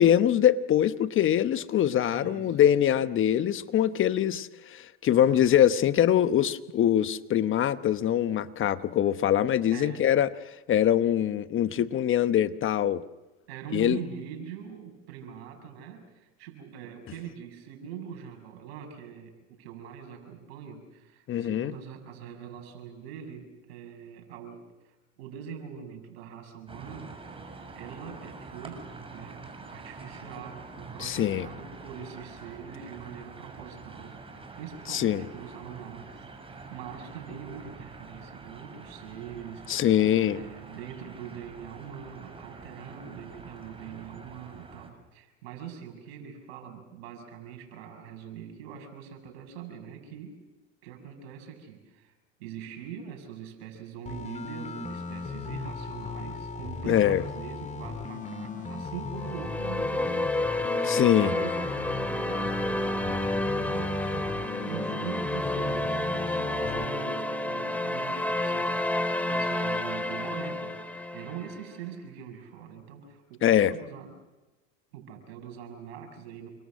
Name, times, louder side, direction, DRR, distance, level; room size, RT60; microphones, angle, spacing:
voice 1, 0.0-10.3 10.7-13.0 13.7-14.0 21.3-21.7 31.0-31.5 34.9-35.2 39.7-40.4 56.9-57.2 60.8-61.3 73.4-73.7, left 10 dB, 40° left, 1.1 m, -23 dB
voice 2, 2.1-2.6 3.0-3.4 5.1-5.5 9.7-10.1 13.5-27.2 27.4-29.4 29.7-34.2 34.5-39.7 40.3-50.4 50.8-52.1 52.4-74.2 74.9-76.5, right 8 dB, 75° right, 6.8 m, -43 dB
sound 1, 26.7-44.9, right 3 dB, 15° right, 6.7 m, -46 dB
sound 2, 54.1-66.9, left 4 dB, 20° left, 3.1 m, -37 dB
sound 3, 59.2-71.6, left 1 dB, 5° left, 2.8 m, -30 dB
29.5 x 25.5 x 6.5 m
hypercardioid pair, 85°, 31 cm